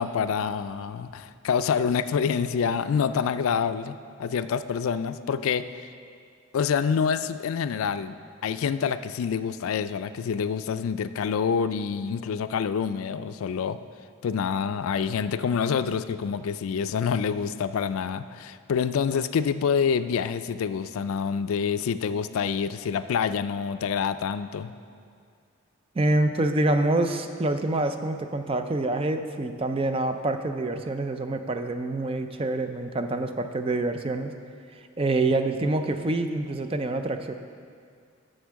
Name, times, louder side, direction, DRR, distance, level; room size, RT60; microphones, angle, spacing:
voice 1, 0.0-5.7 6.5-8.2 8.4-13.8 14.2-24.7, left 6 dB, 80° left, 12 dB, 0.3 m, -27 dB
voice 2, 26.0-34.3 35.0-37.3, right 2 dB, 25° right, 8 dB, 0.4 m, -26 dB
8.1 x 6.4 x 6.2 m, 2.2 s
head